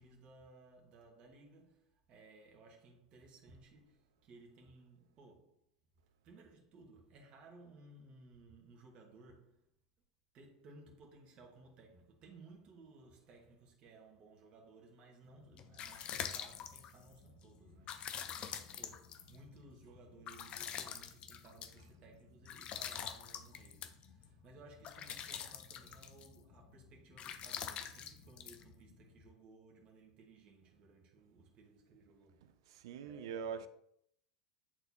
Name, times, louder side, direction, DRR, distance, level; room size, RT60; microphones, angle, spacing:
voice 1, 0.0-5.6 6.2-9.7 10.3-32.6 33.0-33.7, right 3 dB, 40° right, 1.4 m, -59 dB
sound 1, 15.3-29.3, left 8 dB, 40° left, 0.6 m, -46 dB
voice 2, 32.7-33.7, right 7 dB, 65° right, 0.5 m, -42 dB
8.7 x 4.1 x 2.8 m
hypercardioid pair, 85°, 3 cm